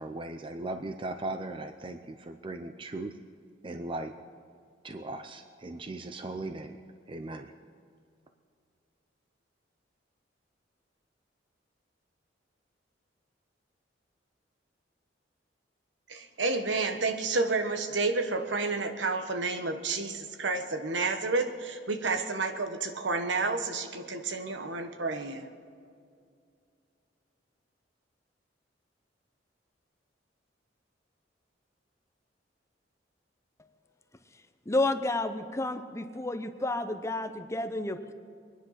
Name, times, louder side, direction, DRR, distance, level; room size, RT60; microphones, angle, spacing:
voice 1, 0.0-3.1 3.6-4.1 4.8-6.8 7.1-7.5, right 2 dB, 30° right, 7 dB, 0.5 m, -38 dB
voice 2, 16.1-25.5, right 3 dB, 75° right, 7 dB, 1.3 m, -30 dB
voice 3, 34.7-38.1, left 2 dB, 15° left, 8 dB, 0.7 m, -31 dB
23.5 x 10.5 x 5.8 m, 2.3 s
head